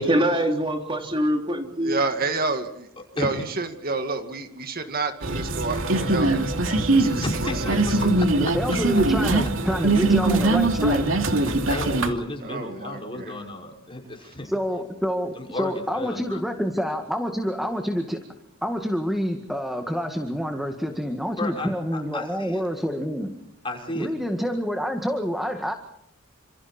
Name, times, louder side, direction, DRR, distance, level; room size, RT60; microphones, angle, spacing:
voice 1, 0.0-2.0, right 1 dB, 25° right, 3 dB, 3.2 m, -23 dB
voice 2, 1.8-2.9 3.1-7.2 7.9-8.1 12.4-13.4, right 3 dB, 45° right, 6 dB, 2.1 m, -29 dB
sound 1, 5.2-12.1, right 2 dB, 70° right, 2.8 m, -22 dB
voice 3, 7.2-8.1 11.4-14.5 15.3-16.4 21.4-22.6 23.6-24.1, left 1 dB, 25° left, 1 dB, 5.8 m, -33 dB
voice 4, 8.4-11.1 14.4-18.2 18.6-23.4 23.9-25.7, equal, ahead, 5 dB, 1.9 m, -27 dB
29.5 x 27.5 x 4.4 m, 0.75 s
head